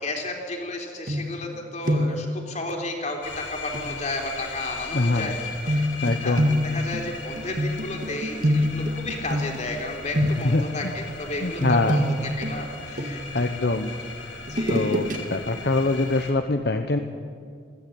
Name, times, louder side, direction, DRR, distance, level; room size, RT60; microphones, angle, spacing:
voice 1, 0.0-13.2 13.6-13.7 14.4-15.1, left 2 dB, 40° left, 2 dB, 3.5 m, -33 dB
sound 1, 1.1-1.6 1.8-2.3 3.7-3.9 5.7-9.8 10.1-10.7 11.6-13.4 14.5-15.2 15.6-15.7, equal, 45° right, 2.0 m, -25 dB
sound 2, 3.2-16.3, left 4 dB, 85° left, 3.5 m, -38 dB
voice 2, 4.9-5.3 6.0-6.5 10.2-10.9 11.4-12.0 13.3-13.9 14.7-17.0, left 2 dB, 60° left, 6 dB, 1.0 m, -24 dB
21.5 x 15.5 x 8.6 m, 2.2 s
head